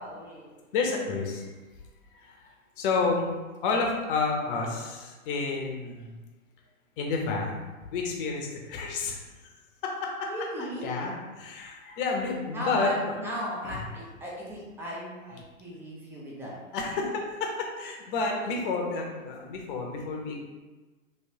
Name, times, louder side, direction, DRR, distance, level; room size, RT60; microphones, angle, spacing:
voice 1, 0.0-0.6 10.3-11.0 12.5-16.6 17.0-17.1 18.4-18.5, equal, 5° right, -5 dB, 0.6 m, -36 dB
voice 2, 0.7-1.5 2.1-3.3 3.6-6.1 7.0-7.6 7.9-9.2 9.4-9.5 9.8-10.3 10.6-13.1 13.6-13.7 16.7-20.4, left 4 dB, 40° left, 1 dB, 0.8 m, -30 dB
3.1 x 3.0 x 2.9 m, 1.2 s
hypercardioid pair, 115°, 41 cm